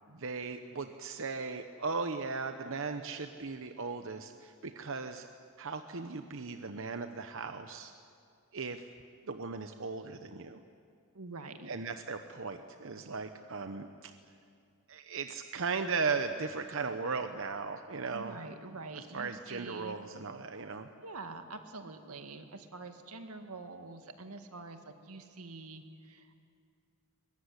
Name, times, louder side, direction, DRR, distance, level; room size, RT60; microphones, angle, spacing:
voice 1, 0.1-5.3 5.6-7.9 8.5-8.9 9.2-10.6 11.7-14.1 14.9-18.4 19.1-20.9, right 4 dB, 60° right, 8 dB, 0.9 m, -37 dB
voice 2, 11.1-11.7 18.1-20.0 21.0-26.3, right 3 dB, 90° right, 7 dB, 2.0 m, -46 dB
23.0 x 21.0 x 9.9 m, 2.3 s
head